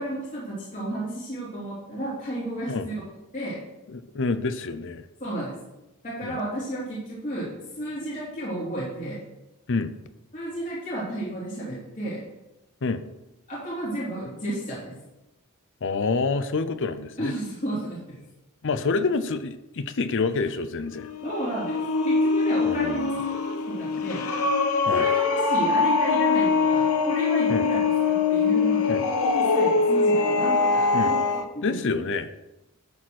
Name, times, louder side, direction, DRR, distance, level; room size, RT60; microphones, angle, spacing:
voice 1, 0.0-3.0 3.3-3.6 5.2-5.5 6.0-7.5 7.8-9.2 10.3-12.2 13.5-14.9 17.2-18.2 21.2-21.8 22.0-24.2 24.9-27.8 28.1-28.8 29.3-31.2 31.5-31.7, right 1 dB, 35° left, -8 dB, 3.3 m, -32 dB
voice 2, 3.9-5.0 6.2-6.4 9.7-9.9 12.8-13.0 15.8-17.3 18.6-21.1 22.6-23.2 24.9-25.1 27.5-27.7 28.9-29.0 30.9-31.2 31.6-32.3, left 4 dB, 60° left, 11 dB, 0.6 m, -27 dB
sound 1, 20.9-31.4, left 4 dB, 75° left, 0.9 m, -23 dB
12.0 x 4.3 x 6.4 m, 0.96 s
head